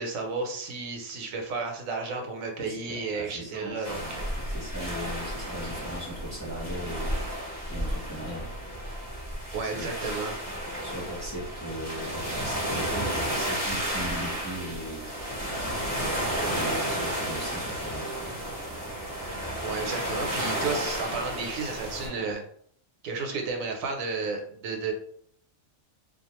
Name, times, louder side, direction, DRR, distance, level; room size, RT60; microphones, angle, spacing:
voice 1, 0.0-4.3 9.5-10.4 19.6-22.4 23.0-24.9, right 4 dB, 80° right, 3 dB, 1.0 m, -32 dB
voice 2, 2.6-7.3 7.7-8.5 9.6-9.9 10.8-15.1 16.5-18.4, equal, 15° left, -6 dB, 0.8 m, -38 dB
sound 1, 3.8-22.1, equal, 15° right, 0.7 m, -32 dB
sound 2, 13.6-22.4, right 3 dB, 55° right, 0.7 m, -44 dB
2.4 x 2.3 x 2.9 m, 0.62 s
omnidirectional pair, 1.4 m